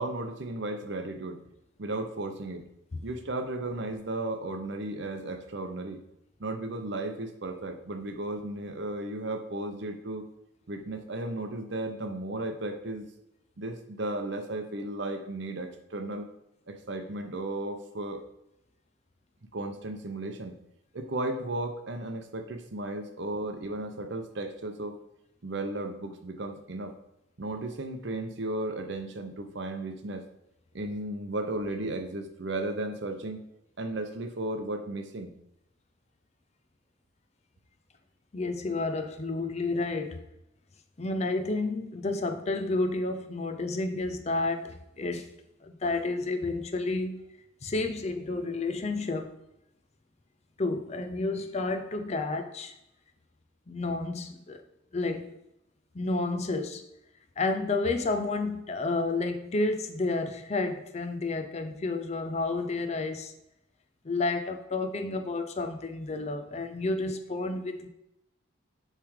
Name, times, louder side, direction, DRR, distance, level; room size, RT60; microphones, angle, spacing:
voice 1, 0.0-1.4 1.8-2.6 3.0-6.0 6.4-10.3 10.7-13.1 13.6-16.3 16.7-18.2 19.5-20.5 20.9-25.0 25.4-26.9 27.4-30.2 30.7-33.4 33.8-35.3, right 2 dB, 55° right, 6 dB, 0.7 m, -35 dB
voice 2, 38.3-40.2 41.0-45.3 45.6-47.2 47.6-49.4 50.6-52.8 53.7-54.6 54.9-55.4 55.9-56.9 57.4-63.3 64.0-67.9, left 3 dB, 30° left, 6 dB, 0.5 m, -30 dB
7.0 x 3.3 x 4.8 m, 0.85 s
head